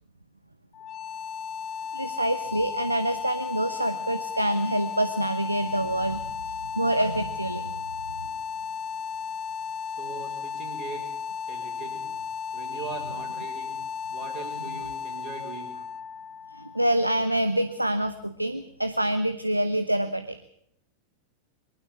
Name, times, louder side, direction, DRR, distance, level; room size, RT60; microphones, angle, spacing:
sound 1, 0.7-17.7, left 6 dB, 30° left, 0.8 m, -35 dB
voice 1, 1.9-7.8 12.7-12.9 16.5-20.4, right 1 dB, 85° right, 9 dB, 1.0 m, -26 dB
voice 2, 10.0-11.1 11.5-12.1 12.5-13.8 14.1-15.8, right 5 dB, 45° right, -4 dB, 5.2 m, -40 dB
23.5 x 12.5 x 9.5 m, 0.70 s
figure-of-eight pair, 90°, 0 cm